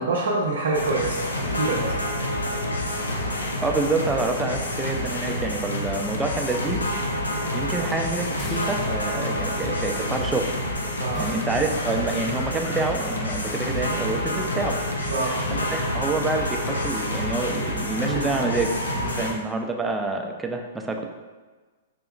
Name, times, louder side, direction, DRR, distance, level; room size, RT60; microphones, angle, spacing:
voice 1, 0.0-2.0 11.0-11.4 15.1-15.4 18.0-18.4 19.0-19.3, right 3 dB, 60° right, -3 dB, 0.5 m, -27 dB
sound 1, 0.7-19.3, left 1 dB, 75° left, 0.5 m, -28 dB
voice 2, 3.6-6.8 7.5-10.5 11.2-14.8 15.7-18.7 19.0-21.1, right 3 dB, 10° right, 3 dB, 0.4 m, -27 dB
sound 2, 7.1-18.1, equal, 35° left, 0.9 m, -43 dB
5.0 x 2.8 x 2.4 m, 1.3 s
figure-of-eight pair, 110°, 0 cm